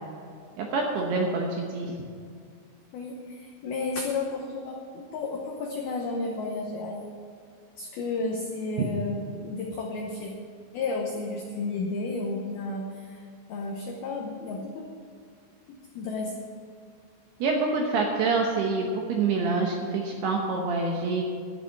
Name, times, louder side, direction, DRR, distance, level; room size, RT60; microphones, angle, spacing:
voice 1, 0.6-1.9 17.4-21.2, right 3 dB, 75° right, 0 dB, 2.5 m, -26 dB
voice 2, 2.9-7.1 7.8-10.3 10.7-13.2 13.5-14.9 15.7-16.4, left 3 dB, 80° left, 0 dB, 2.2 m, -32 dB
11.5 x 6.8 x 9.6 m, 2.2 s
omnidirectional pair, 5.8 m